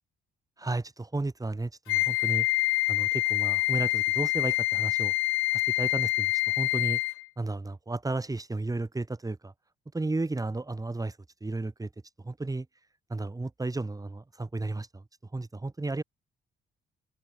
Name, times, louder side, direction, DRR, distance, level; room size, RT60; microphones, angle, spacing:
voice 1, 0.6-2.5 2.9-5.1 5.5-7.0 7.4-9.5 9.9-11.9 12.2-12.7 13.1-15.0 15.3-16.0, right 2 dB, 15° right, 5.2 m, -33 dB
Wind instrument woodwind instrument, 1.9-7.2, left 18 dB, 90° left, 0.7 m, -26 dB
open air
cardioid pair, 90°, 20 cm